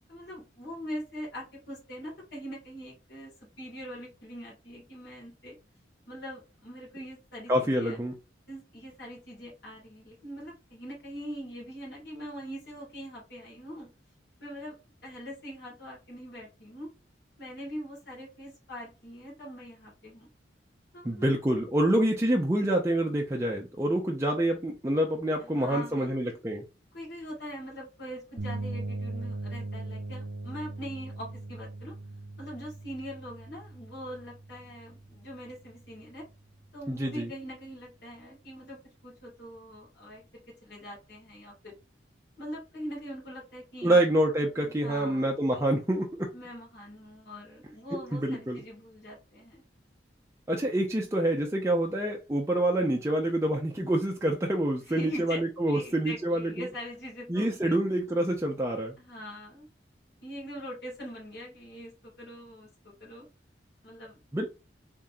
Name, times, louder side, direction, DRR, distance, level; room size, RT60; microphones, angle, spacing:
voice 1, 0.1-3.3 3.6-5.6 6.1-8.0 8.5-13.9 14.4-14.7 15.0-16.9 17.4-20.3 20.9-21.3 25.6-26.2 26.9-31.9 32.4-36.2 36.7-38.8 39.0-41.7 42.4-44.1 44.8-45.2 46.3-49.6 54.8-57.8 59.0-59.7 60.2-63.3 63.8-64.2, equal, 65° left, 2.1 m, -42 dB
voice 2, 7.5-8.1 21.0-26.6 36.9-37.3 43.8-46.3 48.1-48.6 50.5-56.7 57.3-58.9 64.3-64.5, right 1 dB, 15° right, 0.5 m, -27 dB
sound 1, 28.4-36.1, right 2 dB, 85° right, 0.7 m, -39 dB
3.7 x 3.5 x 2.6 m
head